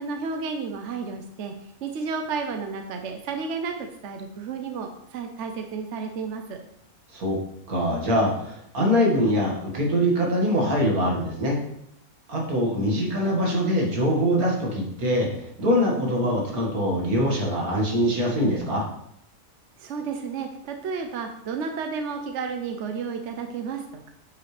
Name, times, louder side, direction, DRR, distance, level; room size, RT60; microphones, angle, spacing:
voice 1, 0.0-1.5 1.8-3.7 4.0-6.6 19.8-24.1, right 5 dB, 60° right, 5 dB, 0.9 m, -32 dB
voice 2, 7.7-11.6 12.3-18.9, equal, 75° right, -2 dB, 2.3 m, -23 dB
9.2 x 5.6 x 3.3 m, 0.74 s
omnidirectional pair, 1.6 m